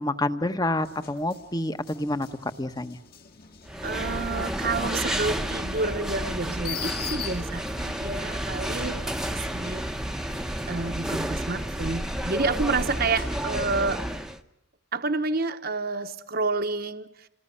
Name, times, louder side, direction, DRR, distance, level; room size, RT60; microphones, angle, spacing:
voice 1, 0.0-3.0, left 1 dB, 20° left, 10 dB, 1.2 m, -28 dB
sound 1, 0.8-7.9 8.6-11.6 12.1-14.1, left 7 dB, 45° left, 2.3 m, -43 dB
sound 2, 3.7-14.4, right 1 dB, 5° right, 1.0 m, -31 dB
voice 2, 3.8-9.8 10.2-10.3 10.7-14.0 14.9-17.3, right 3 dB, 45° right, 7 dB, 1.0 m, -29 dB
28.5 x 20.5 x 10.0 m, 0.80 s
head